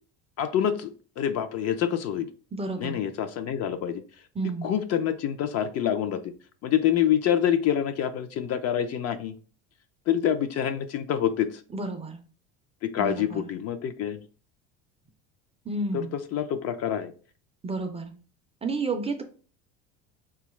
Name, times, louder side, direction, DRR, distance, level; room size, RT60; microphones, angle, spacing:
voice 1, 0.4-2.3 2.8-4.0 4.6-6.3 6.6-9.4 10.1-11.6 12.8-14.2 15.9-16.0 16.3-17.1, left 9 dB, 45° left, 9 dB, 0.4 m, -26 dB
voice 2, 2.5-3.0 4.4-4.7 11.7-12.2 13.0-13.4 15.7-16.1 17.6-18.1 18.6-19.2, right 3 dB, 20° right, 6 dB, 0.4 m, -31 dB
4.0 x 2.3 x 3.0 m, 0.39 s
supercardioid pair, 95°, 36 cm